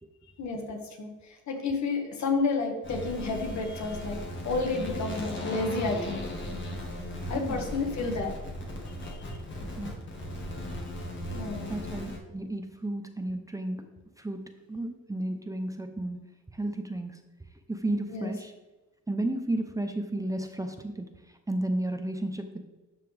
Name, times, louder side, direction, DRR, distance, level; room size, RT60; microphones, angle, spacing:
voice 1, 0.4-6.3 7.3-8.3 8.9-9.4 11.3-11.8 18.1-18.3, left 3 dB, 65° left, 2 dB, 1.8 m, -31 dB
sound 1, 2.8-12.2, left 1 dB, 40° left, 1.9 m, -37 dB
voice 2, 9.6-9.9 11.7-16.3 16.5-17.2 17.7-18.5 19.1-21.1 21.5-22.7, right 1 dB, 10° right, 6 dB, 0.8 m, -33 dB
12.0 x 5.7 x 3.4 m, 1.2 s
cardioid pair, 90°, 30 cm